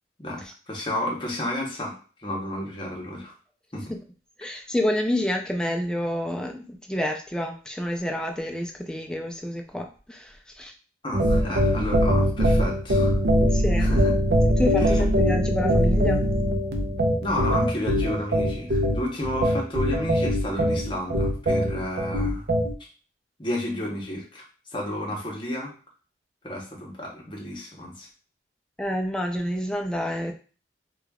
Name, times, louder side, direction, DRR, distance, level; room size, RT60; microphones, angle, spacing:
voice 1, 0.2-3.3 3.7-3.9 11.0-13.2 13.8-14.1 14.8-15.0 17.2-22.5 23.4-24.4 24.7-25.7 26.4-28.1, left 1 dB, 25° left, -2 dB, 0.9 m, -31 dB
voice 2, 4.4-10.7 13.4-13.9 14.6-16.2 28.8-30.3, left 1 dB, 5° left, 2 dB, 0.4 m, -28 dB
sound 1, 11.1-22.7, equal, 60° right, 0.5 m, -22 dB
4.9 x 2.3 x 2.3 m, 0.38 s
head